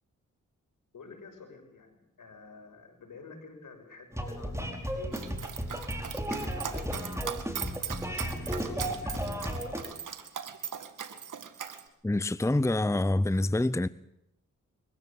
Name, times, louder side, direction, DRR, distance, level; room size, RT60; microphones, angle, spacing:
voice 1, 0.9-7.4 7.7-10.0, left 4 dB, 75° left, 6.1 m, -50 dB
sound 1, 4.1-9.8, equal, 10° right, 5.1 m, -34 dB
Dog, 5.1-11.8, right 7 dB, 70° right, 1.9 m, -39 dB
voice 2, 12.0-13.9, left 1 dB, 10° left, 0.8 m, -26 dB
23.0 x 15.0 x 8.6 m
supercardioid pair, 40°, 32 cm